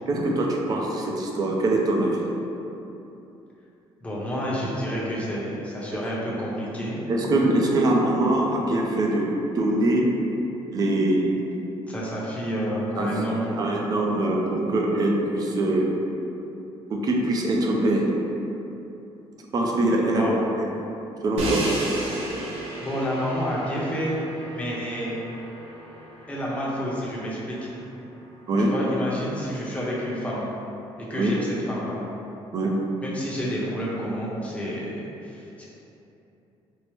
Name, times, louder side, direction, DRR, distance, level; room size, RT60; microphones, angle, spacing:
voice 1, 0.1-2.2 5.9-6.0 7.1-10.1 10.7-11.3 12.9-15.9 16.9-18.1 19.5-20.2 20.6-20.7 21.2-21.7 28.5-28.7 31.1-31.4 32.5-32.7, right 1 dB, 40° right, -1 dB, 0.4 m, -23 dB
voice 2, 4.0-6.9 11.9-13.6 20.0-20.4 22.8-24.1 24.5-25.2 26.3-27.6 28.6-30.4 31.1-32.0 33.0-35.7, equal, 15° left, -6 dB, 0.7 m, -29 dB
Crash cymbal, 21.4-27.3, right 1 dB, 85° right, 0.6 m, -33 dB
4.5 x 2.0 x 3.1 m, 2.9 s
cardioid pair, 135°, 10 cm